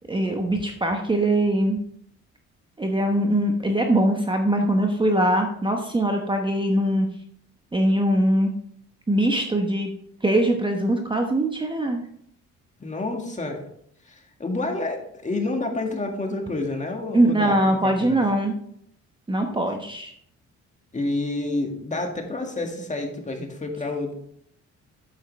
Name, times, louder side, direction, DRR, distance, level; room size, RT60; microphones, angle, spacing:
voice 1, 0.1-1.8 2.8-7.1 7.7-8.5 9.1-9.9 10.2-12.0 17.1-18.6 19.3-20.1, right 1 dB, 15° right, 3 dB, 1.0 m, -22 dB
voice 2, 12.8-13.6 14.1-18.2 20.9-24.1, left 2 dB, 25° left, 2 dB, 1.9 m, -29 dB
8.6 x 7.8 x 3.3 m, 0.68 s
cardioid pair, 90°, 30 cm